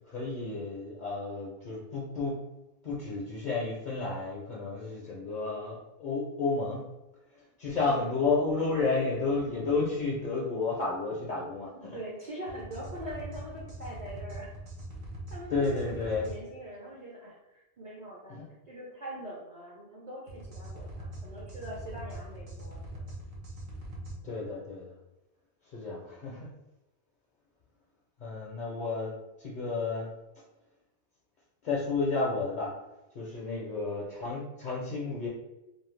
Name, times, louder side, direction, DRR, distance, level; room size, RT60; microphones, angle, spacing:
voice 1, 0.1-2.3 2.8-6.8 7.6-12.0 15.5-16.2 18.3-18.4 24.2-24.9 25.7-26.5 28.2-30.1 31.6-32.7 33.1-35.3, left 3 dB, 55° left, -4 dB, 0.6 m, -31 dB
voice 2, 7.8-9.2 11.9-14.6 15.3-23.0 25.8-26.1 33.5-33.7, right 1 dB, 50° right, -4 dB, 0.6 m, -43 dB
sound 1, 12.5-16.4 20.3-24.2, right 1 dB, 65° right, 0.9 m, -42 dB
2.6 x 2.0 x 3.1 m, 0.98 s
omnidirectional pair, 1.1 m